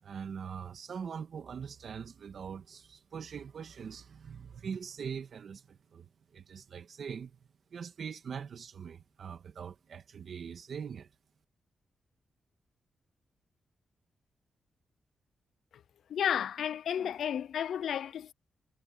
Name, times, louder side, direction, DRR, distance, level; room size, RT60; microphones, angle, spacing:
voice 1, 0.0-7.4 7.7-11.1, right 7 dB, 60° right, 2.2 m, -42 dB
voice 2, 16.1-18.3, left 9 dB, 85° left, 0.4 m, -32 dB
wide cardioid pair, 115°, 0 cm